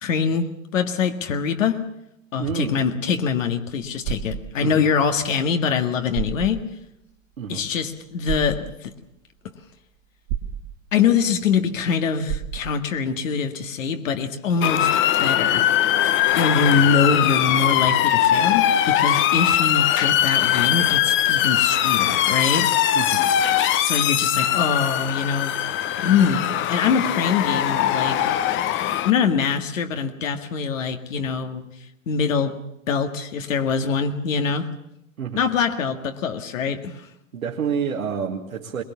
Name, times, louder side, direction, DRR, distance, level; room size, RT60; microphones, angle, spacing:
voice 1, 0.0-1.9 2.3-6.7 7.5-8.9 10.9-14.9 15.2-15.7 16.3-22.7 23.8-28.3 29.0-31.6 32.1-32.6 32.9-34.7 35.4-37.0, left 6 dB, 70° left, 2.0 m, -23 dB
voice 2, 2.4-2.8 4.6-4.8 7.4-7.6 22.9-23.3 26.1-26.2 35.2-35.4 37.3-38.8, right 7 dB, 80° right, 2.1 m, -28 dB
sound 1, 3.8-4.4 5.7-5.8 6.1-6.5 8.3-8.6 10.3-10.7 12.3-12.7, right 11 dB, 55° right, 2.2 m, -29 dB
Motor vehicle (road) / Siren, 14.6-29.1, left 11 dB, 30° left, 0.9 m, -21 dB
22.0 x 20.5 x 7.1 m
hypercardioid pair, 105°, 40 cm